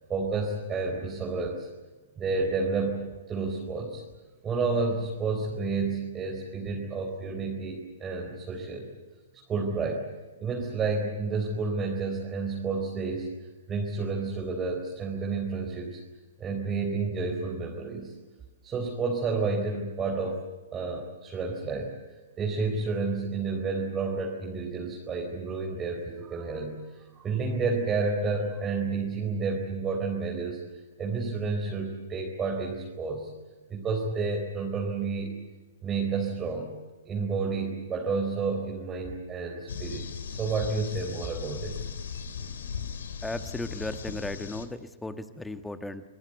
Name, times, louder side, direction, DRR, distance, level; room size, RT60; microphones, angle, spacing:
voice 1, 0.1-1.7 2.2-4.0 4.4-8.9 9.5-10.1 10.4-13.3 13.7-16.0 16.4-18.1 18.6-20.4 20.7-21.9 22.4-30.6 31.0-33.3 33.7-35.4 35.8-36.7 37.0-41.8, right 4 dB, 20° right, -1 dB, 4.4 m, -30 dB
sound 1, 39.7-44.7, left 6 dB, 65° left, 3.0 m, -38 dB
voice 2, 43.2-46.0, left 2 dB, 5° left, 10 dB, 1.4 m, -35 dB
26.5 x 22.0 x 8.1 m, 1.2 s
figure-of-eight pair, 115°, 0 cm